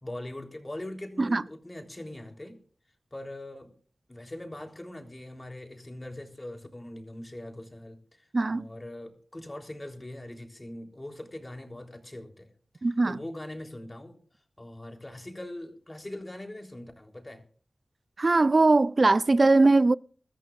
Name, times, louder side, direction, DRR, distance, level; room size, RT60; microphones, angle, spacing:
voice 1, 0.0-2.6 3.1-3.7 4.1-12.5 12.8-14.2 14.6-17.4, left 1 dB, 25° left, 3.5 m, -41 dB
voice 2, 8.3-8.6 12.8-13.2 18.2-20.0, right 3 dB, 50° right, 0.5 m, -21 dB
22.5 x 14.0 x 2.5 m
cardioid pair, 55°, 0 cm